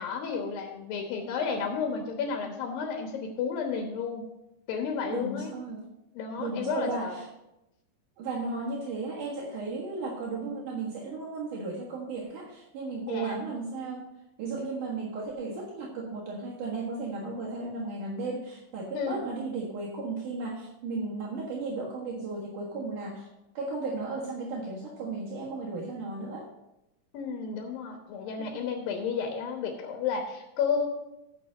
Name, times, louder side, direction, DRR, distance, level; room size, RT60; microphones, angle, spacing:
voice 1, 0.0-4.3 4.7-5.5 6.1-7.2 13.1-13.4 18.9-19.2 27.1-30.9, left 6 dB, 85° left, 3 dB, 2.9 m, -32 dB
voice 2, 5.1-5.9 6.4-7.2 8.2-14.1 14.4-23.3 23.5-26.5 28.4-28.7, right 3 dB, 70° right, -4 dB, 2.9 m, -35 dB
9.6 x 6.6 x 6.4 m, 0.90 s
omnidirectional pair, 4.0 m